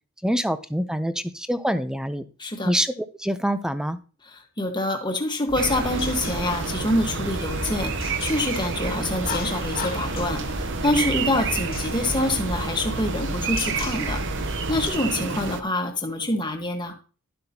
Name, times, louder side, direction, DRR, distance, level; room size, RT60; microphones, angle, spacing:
voice 1, 0.2-2.2 2.6-2.9 3.2-4.0, equal, 5° right, 0.6 m, -25 dB
voice 2, 2.4-2.7 4.2-10.4 10.8-14.2 14.7-16.9, left 1 dB, 20° left, 1.4 m, -26 dB
sound 1, 5.5-14.9, left 1 dB, 45° left, 1.3 m, -34 dB
sound 2, 5.6-15.6, right 5 dB, 60° right, 0.8 m, -30 dB
12.0 x 7.6 x 2.9 m
head